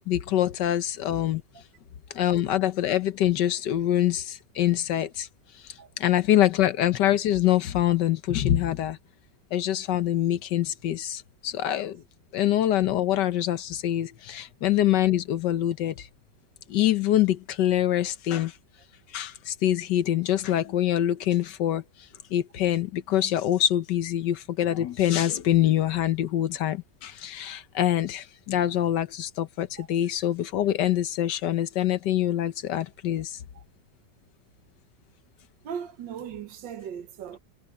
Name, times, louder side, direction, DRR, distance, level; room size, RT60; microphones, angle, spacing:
voice 1, 0.1-1.4 2.1-5.3 5.6-9.0 9.5-12.0 12.3-16.1 16.7-18.5 19.1-21.8 22.3-33.4, left 12 dB, 75° left, 1.5 m, -25 dB
voice 2, 35.6-37.4, right 8 dB, 85° right, 1.8 m, -38 dB
omnidirectional pair, 1.9 m